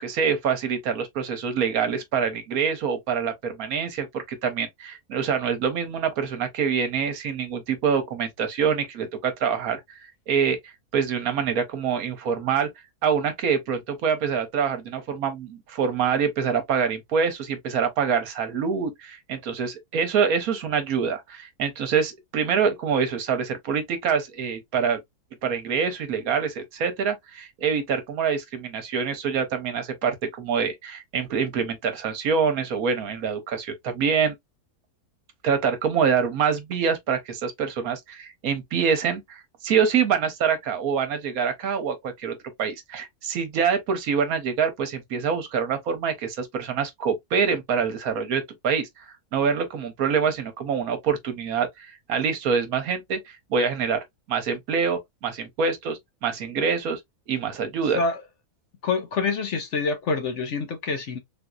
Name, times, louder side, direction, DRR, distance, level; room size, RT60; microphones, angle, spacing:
voice 1, 0.0-9.8 10.3-12.7 13.0-25.0 25.4-34.3 35.4-57.0 57.3-58.0, right 6 dB, 70° right, 1.2 m, -25 dB
voice 2, 58.8-61.2, left 4 dB, 60° left, 0.9 m, -26 dB
3.6 x 2.7 x 2.3 m
omnidirectional pair, 1.6 m